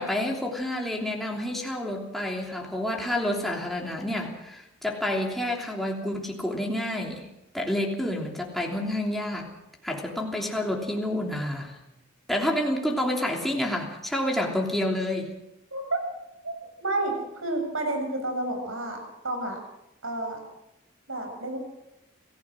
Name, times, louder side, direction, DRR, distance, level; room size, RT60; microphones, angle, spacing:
voice 1, 0.0-7.3 7.5-9.5 9.8-11.8 12.3-15.3, left 1 dB, ahead, -1 dB, 3.1 m, -29 dB
voice 2, 16.4-17.1 17.4-19.6 20.0-20.4 21.1-21.6, right 2 dB, 75° right, 4 dB, 7.1 m, -30 dB
28.0 x 16.0 x 6.3 m, 0.89 s
head